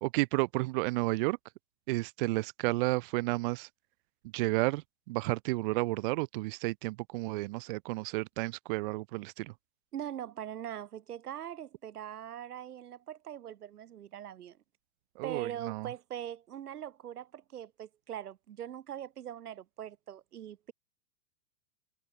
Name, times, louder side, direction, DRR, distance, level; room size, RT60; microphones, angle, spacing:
voice 1, 0.0-1.4 1.9-3.7 4.3-9.5 15.2-15.9, right 22 dB, 40° right, 0.5 m, -32 dB
voice 2, 9.9-14.6 15.2-20.7, right 10 dB, 85° right, 2.5 m, -42 dB
hypercardioid pair, 135°, 44 cm